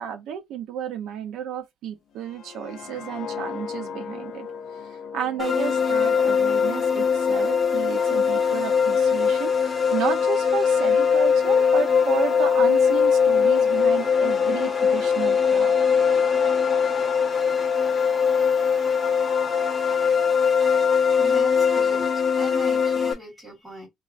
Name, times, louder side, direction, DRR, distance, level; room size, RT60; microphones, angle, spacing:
voice 1, 0.0-4.5 4.9-15.7, right 8 dB, 85° right, 0.7 m, -32 dB
sound 1, 2.2-7.3 7.6-7.9, left 7 dB, 55° left, 0.6 m, -38 dB
sound 2, 5.4-23.1, left 6 dB, 15° left, 1.4 m, -21 dB
voice 2, 21.2-23.9, right 1 dB, 15° right, 2.4 m, -40 dB
3.7 x 3.1 x 2.5 m
cardioid pair, 165°, 0 cm